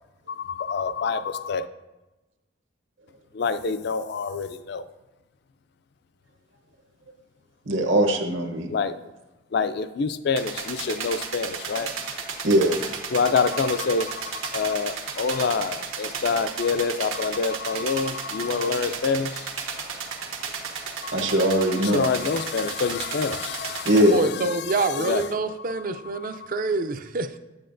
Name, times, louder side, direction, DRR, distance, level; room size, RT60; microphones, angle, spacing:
voice 1, 0.3-1.7 3.3-4.8 8.7-8.9 9.5-11.9 13.1-19.5 21.0-24.6 24.8-25.3 26.2-26.4, left 5 dB, 50° left, 12 dB, 0.3 m, -27 dB
voice 2, 7.7-8.7 12.4-12.8 21.1-22.1 23.8-24.2, equal, 65° right, 4 dB, 0.9 m, -20 dB
sound 1, 10.4-24.0, right 5 dB, 85° right, 1.2 m, -34 dB
voice 3, 23.9-27.4, right 3 dB, 40° right, 10 dB, 0.4 m, -27 dB
8.7 x 8.4 x 2.6 m, 1.1 s
head